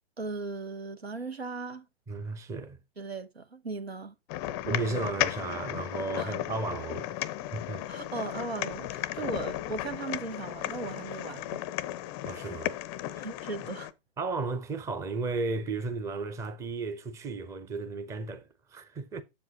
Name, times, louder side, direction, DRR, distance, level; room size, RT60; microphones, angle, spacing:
voice 1, 0.2-1.9 3.0-4.1 6.2-6.3 7.9-11.6 13.1-13.9, right 3 dB, 90° right, 1.2 m, -37 dB
voice 2, 2.1-2.8 4.7-7.2 7.5-7.9 12.2-12.8 14.2-19.2, right 3 dB, 10° right, 0.6 m, -34 dB
sound 1, 4.3-13.9, left 14 dB, 25° left, 0.5 m, -35 dB
7.6 x 7.3 x 2.9 m
figure-of-eight pair, 120°, 30 cm